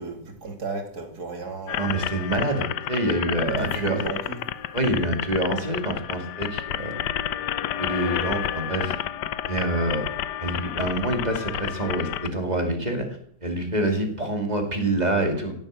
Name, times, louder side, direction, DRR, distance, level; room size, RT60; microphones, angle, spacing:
voice 1, 0.0-2.1 3.6-4.4, right 3 dB, 65° right, 4 dB, 3.1 m, -34 dB
sound 1, 1.7-12.3, left 11 dB, 80° left, 1.4 m, -30 dB
voice 2, 1.8-4.0 4.7-7.0 7.8-8.9 9.5-10.0 10.4-13.0 13.4-15.5, right 1 dB, 25° right, 4 dB, 2.7 m, -26 dB
16.0 x 8.7 x 7.6 m, 0.69 s
omnidirectional pair, 1.8 m